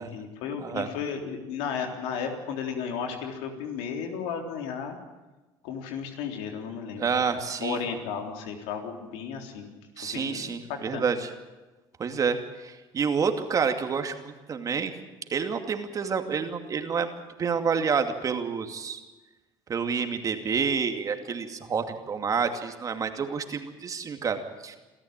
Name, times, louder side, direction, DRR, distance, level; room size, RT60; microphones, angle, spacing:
voice 1, 0.0-5.0 5.6-7.1 7.6-9.7 10.0-11.1, left 6 dB, 85° left, 4 dB, 3.7 m, -34 dB
voice 2, 0.6-0.9 7.0-7.8 10.0-11.3 12.0-14.9 15.3-19.0 19.7-24.8, right 6 dB, 35° right, 6 dB, 2.5 m, -28 dB
27.0 x 13.5 x 9.0 m, 1.2 s
cardioid pair, 105°, 10 cm